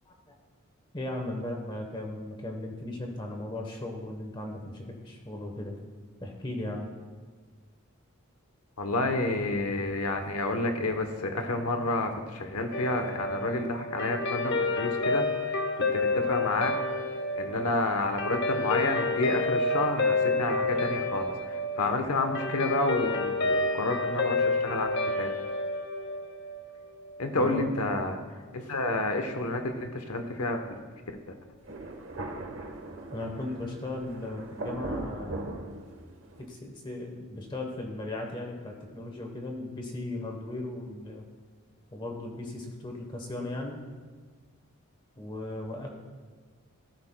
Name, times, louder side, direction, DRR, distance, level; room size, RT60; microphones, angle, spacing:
voice 1, 0.9-5.7 6.2-6.9 27.3-27.7 33.1-35.7 36.4-41.2 41.9-43.8 45.2-45.9, left 1 dB, 20° left, 2 dB, 1.0 m, -37 dB
voice 2, 8.8-16.8 17.4-25.3 27.2-28.2 28.5-30.7, left 2 dB, 90° left, 6 dB, 0.9 m, -30 dB
Guitar, 12.7-27.3, left 2 dB, 50° left, 0.8 m, -29 dB
Thunder, 31.6-36.4, right 2 dB, 55° right, 1.0 m, -39 dB
14.0 x 13.5 x 2.2 m, 1.5 s
head